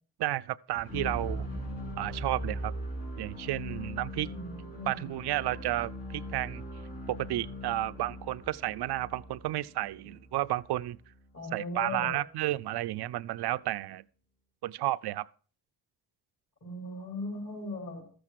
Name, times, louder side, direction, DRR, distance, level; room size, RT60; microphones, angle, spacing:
voice 1, 0.2-1.5 2.0-2.7 3.2-4.3 4.9-6.6 7.1-11.0 11.5-14.0 14.6-15.3, right 15 dB, 65° right, 0.6 m, -32 dB
sound 1, 0.7-10.7, equal, 85° left, 7.0 m, -40 dB
voice 2, 4.3-5.1 11.3-12.2 16.6-18.0, left 2 dB, 45° left, 4.9 m, -38 dB
13.0 x 7.8 x 4.6 m
supercardioid pair, 50°, 44 cm